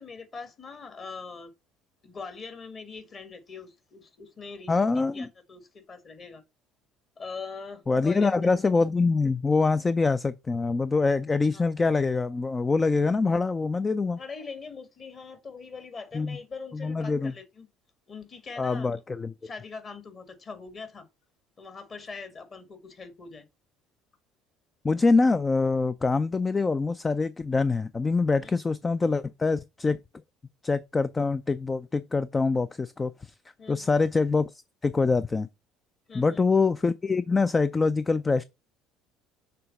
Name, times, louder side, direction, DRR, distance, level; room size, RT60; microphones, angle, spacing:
voice 1, 0.0-1.5 2.0-4.9 5.1-6.4 7.2-8.3 11.5-11.7 14.2-17.7 18.1-18.9 19.4-21.1 21.6-23.5 28.4-28.5 33.6-33.9 36.1-36.4, left 4 dB, 35° left, 1.7 m, -42 dB
voice 2, 4.7-5.3 7.9-14.2 16.1-16.4 16.7-17.3 18.6-19.3 24.8-30.0 30.6-33.3 33.7-35.5 36.1-38.4, left 4 dB, 20° left, 0.4 m, -25 dB
6.7 x 3.5 x 5.2 m
figure-of-eight pair, 60°, 0 cm